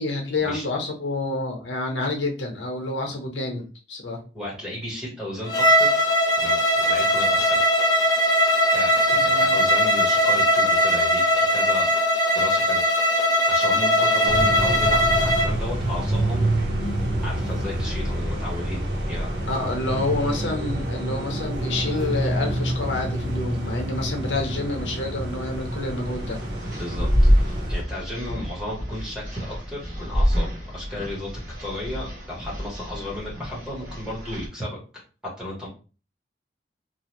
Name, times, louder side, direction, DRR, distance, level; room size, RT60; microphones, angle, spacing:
voice 1, 0.0-4.2 9.1-9.6 19.5-26.4 28.2-28.4, left 2 dB, 90° left, 2 dB, 0.8 m, -28 dB
voice 2, 4.3-6.1 6.4-7.6 8.7-11.9 12.3-12.8 13.5-16.6 17.2-19.4 26.8-27.3 27.7-31.3 31.6-35.0 35.4-35.7, left 1 dB, 5° right, -6 dB, 1.1 m, -34 dB
Bowed string instrument, 5.5-15.5, equal, 20° left, 0.3 m, -20 dB
sound 1, 14.3-27.8, right 1 dB, 75° right, 0.7 m, -27 dB
sound 2, 26.1-34.5, equal, 45° right, 1.0 m, -26 dB
2.8 x 2.0 x 2.9 m, 0.35 s
head